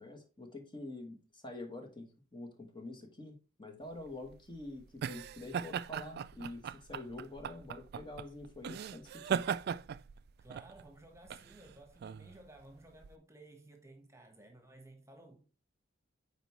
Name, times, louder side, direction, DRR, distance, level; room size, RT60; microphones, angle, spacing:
voice 1, 0.0-9.4, left 2 dB, 25° left, 1.2 m, -47 dB
sound 1, 3.9-13.1, right 7 dB, 50° right, 0.3 m, -39 dB
voice 2, 10.4-15.5, right 2 dB, 15° right, 1.3 m, -56 dB
9.0 x 4.6 x 3.1 m
head